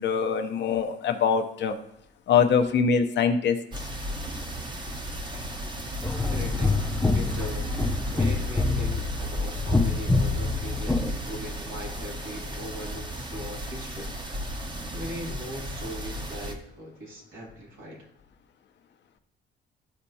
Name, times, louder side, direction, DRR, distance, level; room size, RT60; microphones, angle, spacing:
voice 1, 0.0-1.7 2.3-3.6, left 6 dB, 60° left, 6 dB, 0.8 m, -23 dB
sound 1, 3.7-16.5, right 1 dB, 20° right, 1.0 m, -35 dB
sound 2, 6.0-11.1, left 3 dB, 10° left, 0.7 m, -26 dB
voice 2, 6.1-6.7 7.1-7.7 8.1-14.1 14.5-18.1, equal, 75° right, -3 dB, 2.7 m, -40 dB
13.0 x 4.3 x 2.8 m, 0.75 s
cardioid pair, 90°, 20 cm